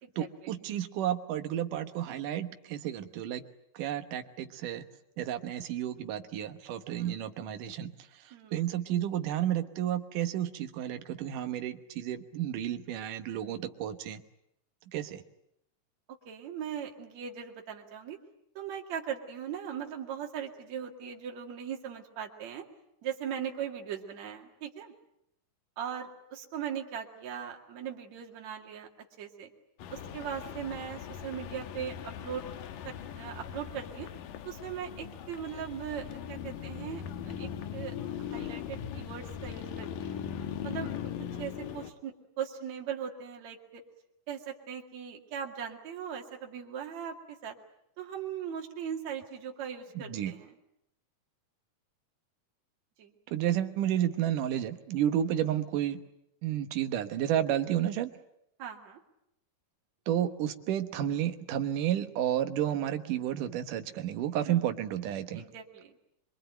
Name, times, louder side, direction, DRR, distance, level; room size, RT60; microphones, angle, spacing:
voice 1, 0.2-3.4 3.7-4.8 5.2-14.2 14.9-15.2 50.0-50.3 53.3-56.0 56.4-58.1 60.1-65.5, right 11 dB, 75° right, 8 dB, 2.8 m, -31 dB
voice 2, 8.3-8.6 16.3-18.2 18.6-22.6 23.0-24.9 25.8-28.9 29.2-29.5 29.9-32.4 32.8-34.1 34.5-37.9 38.3-40.2 40.6-40.9 41.4-43.8 44.3-47.6 48.0-50.5 53.0-53.1 58.6-59.0 64.5-64.6 65.3-65.9, right 8 dB, 55° right, 1 dB, 3.4 m, -39 dB
sound 1, 29.8-41.9, left 9 dB, 75° left, 2.8 m, -40 dB
24.5 x 24.0 x 9.1 m, 0.79 s
omnidirectional pair, 3.9 m